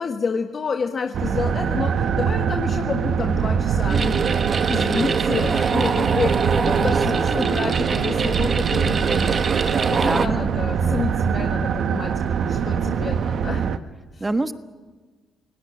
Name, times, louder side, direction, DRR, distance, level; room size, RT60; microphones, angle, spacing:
voice 1, 0.0-4.2 4.5-9.6 9.9-13.8 14.1-14.3, left 5 dB, 45° left, 4 dB, 1.5 m, -29 dB
sound 1, 1.1-13.8, right 7 dB, 65° right, 1.1 m, -23 dB
sound 2, 3.9-10.3, right 5 dB, 45° right, 1.4 m, -24 dB
voice 2, 9.9-10.4 14.2-14.5, right 2 dB, 20° right, 9 dB, 1.4 m, -26 dB
27.5 x 18.0 x 9.6 m, 1.4 s
cardioid pair, 90°, 0 cm